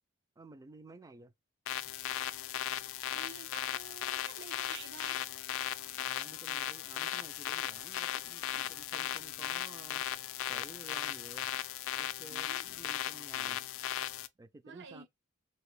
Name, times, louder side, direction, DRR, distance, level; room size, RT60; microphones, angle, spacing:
voice 1, 0.4-1.3 6.0-10.0 10.5-11.5 12.0-13.6 14.4-15.1, right 2 dB, 15° right, 0.3 m, -53 dB
sound 1, 1.7-14.3, left 12 dB, 75° left, 0.3 m, -37 dB
voice 2, 3.1-5.3 12.3-12.7 13.3-13.6 14.6-15.1, right 5 dB, 60° right, 0.6 m, -51 dB
3.2 x 2.8 x 3.2 m
head